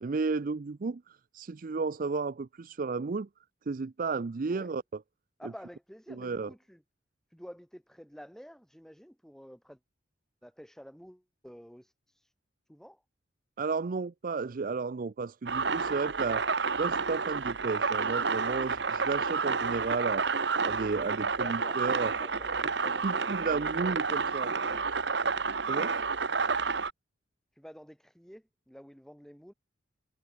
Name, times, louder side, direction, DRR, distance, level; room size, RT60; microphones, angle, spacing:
voice 1, 0.0-3.3 3.7-4.8 6.1-6.5 13.6-16.5 16.8-20.3 20.6-22.1 23.0-24.5 25.7-25.9, right 4 dB, 45° right, 0.5 m, -33 dB
voice 2, 5.4-6.8 7.3-9.8 10.4-12.3 12.7-13.0 21.4-21.8 22.1-24.9 25.6-26.0 27.5-29.5, equal, ahead, 6.4 m, -50 dB
sound 1, 15.5-26.9, right 5 dB, 65° right, 1.2 m, -30 dB
head